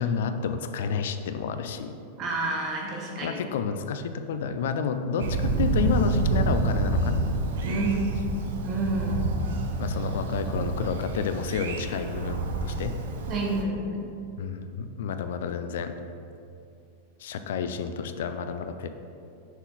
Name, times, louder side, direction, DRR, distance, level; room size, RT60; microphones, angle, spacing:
voice 1, 0.0-2.0 3.2-7.2 7.6-7.8 9.8-13.0 14.4-15.9 17.2-18.9, left 6 dB, 70° left, 8 dB, 0.3 m, -30 dB
voice 2, 2.2-3.4 7.6-8.4 8.6-9.3 13.3-14.1, right 2 dB, 25° right, -1 dB, 0.9 m, -29 dB
Thunder, 5.2-13.6, right 3 dB, 80° right, 0.6 m, -28 dB
6.1 x 4.1 x 4.0 m, 2.6 s
supercardioid pair, 170°, 0 cm